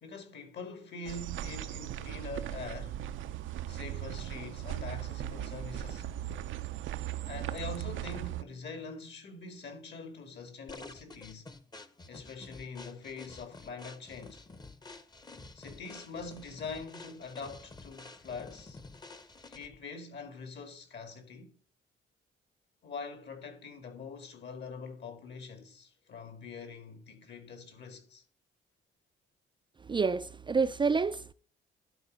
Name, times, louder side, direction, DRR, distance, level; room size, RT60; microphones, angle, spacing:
voice 1, 0.0-3.0 3.7-6.1 7.3-11.5 12.1-14.4 15.5-18.8 19.5-21.6 22.8-28.2, left 4 dB, 60° left, 2.1 m, -44 dB
sound 1, 1.0-8.4, right 12 dB, 75° right, 0.6 m, -38 dB
sound 2, 10.7-19.8, left 3 dB, 20° left, 0.8 m, -50 dB
voice 2, 29.8-31.3, right 5 dB, 25° right, 0.4 m, -28 dB
11.5 x 4.2 x 5.2 m
cardioid pair, 90°, 20 cm